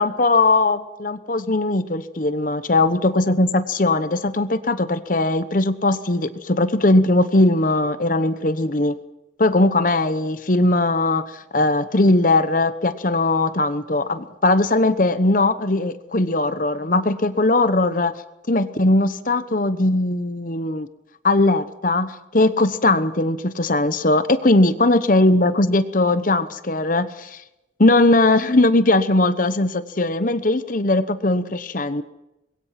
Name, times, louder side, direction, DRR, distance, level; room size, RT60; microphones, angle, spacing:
voice 1, 0.0-9.0 9.4-18.1 18.5-20.9 21.2-27.4 27.8-32.0, left 2 dB, 45° left, 11 dB, 1.0 m, -19 dB
25.0 x 22.0 x 5.9 m, 0.90 s
head